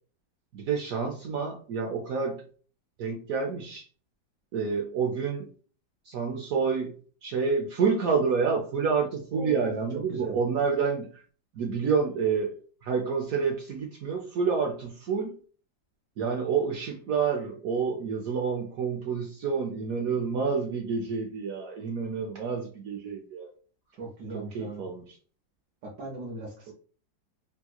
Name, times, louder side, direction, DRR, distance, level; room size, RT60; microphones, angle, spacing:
voice 1, 0.5-2.5 3.0-3.8 4.5-5.5 6.0-6.9 7.2-11.2 11.5-12.5 12.8-15.4 16.2-23.5 24.3-25.2, right 5 dB, 85° right, 1 dB, 0.7 m, -28 dB
voice 2, 9.3-10.3 23.9-24.9 25.8-26.7, right 2 dB, 65° right, -2 dB, 1.2 m, -39 dB
3.5 x 2.8 x 2.2 m, 0.42 s
omnidirectional pair, 2.1 m